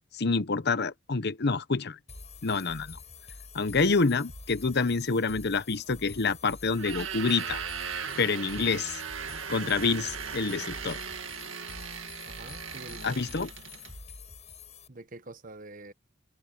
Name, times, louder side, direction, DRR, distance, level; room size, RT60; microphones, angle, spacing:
voice 1, 0.1-2.0 2.4-3.0 3.5-7.6 8.2-9.0 9.5-11.0 13.0-13.5, left 4 dB, 50° left, 0.9 m, -27 dB
sound 1, 2.1-14.9, left 4 dB, 35° left, 6.6 m, -47 dB
sound 2, 6.7-13.9, right 7 dB, 65° right, 2.0 m, -38 dB
voice 2, 12.3-13.2 14.9-15.9, right 2 dB, 40° right, 1.2 m, -46 dB
head